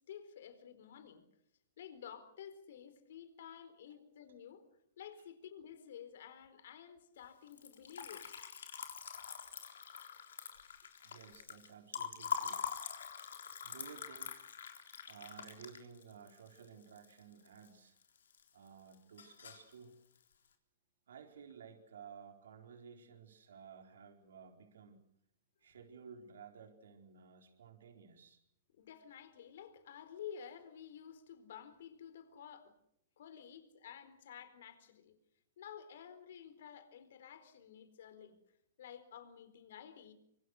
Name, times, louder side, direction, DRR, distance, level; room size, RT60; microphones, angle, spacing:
voice 1, 0.1-1.2 1.8-4.6 5.0-8.2 28.8-32.7 33.2-35.1 35.6-38.4 38.8-40.1, left 8 dB, 65° left, 11 dB, 4.2 m, -52 dB
Liquid, 7.5-17.7 18.0-18.7 18.9-19.7, left 7 dB, 90° left, 3.9 m, -44 dB
voice 2, 11.0-12.6 13.6-18.0 18.5-20.0 21.1-25.0 25.6-28.4, right 6 dB, 85° right, 3 dB, 4.4 m, -55 dB
25.5 x 25.5 x 6.6 m, 0.75 s
hypercardioid pair, 155°, 0 cm